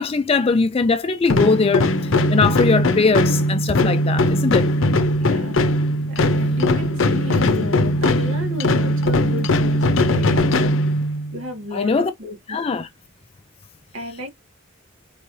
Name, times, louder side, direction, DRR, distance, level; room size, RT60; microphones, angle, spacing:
voice 1, 0.0-4.7 11.7-12.1 12.5-12.9, left 4 dB, 25° left, 0.3 m, -20 dB
sound 1, 1.3-11.4, left 1 dB, 65° left, 0.6 m, -19 dB
voice 2, 5.2-10.8 11.3-12.6 13.9-14.3, left 1 dB, 70° right, 1.8 m, -33 dB
4.5 x 3.3 x 2.6 m
head